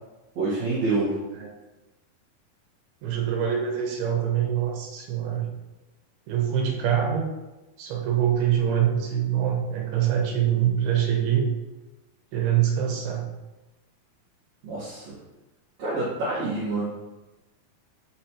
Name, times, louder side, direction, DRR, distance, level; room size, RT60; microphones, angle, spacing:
voice 1, 0.4-1.2 14.6-15.2 15.8-16.8, right 2 dB, 55° right, -10 dB, 2.3 m, -27 dB
voice 2, 3.0-5.5 6.3-7.3 7.8-11.5 12.3-13.3, right 9 dB, 90° right, 0 dB, 3.0 m, -24 dB
7.6 x 5.1 x 2.9 m, 1.1 s
omnidirectional pair, 4.3 m